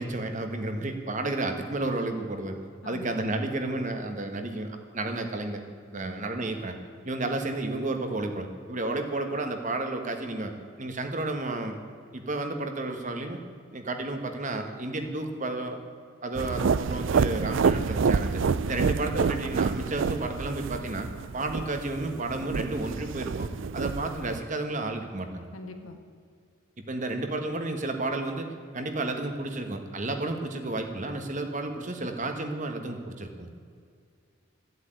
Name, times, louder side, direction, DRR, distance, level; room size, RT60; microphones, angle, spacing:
voice 1, 0.0-2.6 2.8-5.6 5.9-6.8 7.0-10.5 10.8-11.8 12.1-13.4 13.7-15.8 16.2-21.1 21.3-25.5 26.9-28.5 28.7-33.5, right 2 dB, 35° right, 5 dB, 1.5 m, -32 dB
voice 2, 2.8-3.1 5.9-6.1 18.6-19.0 25.5-26.0, left 2 dB, 85° left, 5 dB, 1.6 m, -42 dB
sound 1, 16.3-24.4, right 5 dB, 65° right, 0.4 m, -28 dB
14.0 x 8.2 x 9.3 m, 2.2 s
head